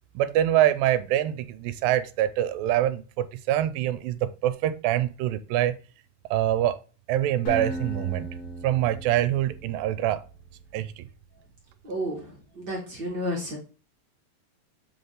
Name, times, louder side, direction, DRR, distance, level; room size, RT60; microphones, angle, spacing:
voice 1, 0.2-5.7 6.3-6.8 7.1-8.3 8.6-10.2 10.7-11.0, right 12 dB, 80° right, 2.3 m, -25 dB
Acoustic guitar, 7.5-10.5, right 1 dB, 85° left, 4.4 m, -37 dB
voice 2, 11.8-13.6, equal, 45° right, 1.5 m, -32 dB
7.6 x 3.5 x 3.9 m
omnidirectional pair, 4.1 m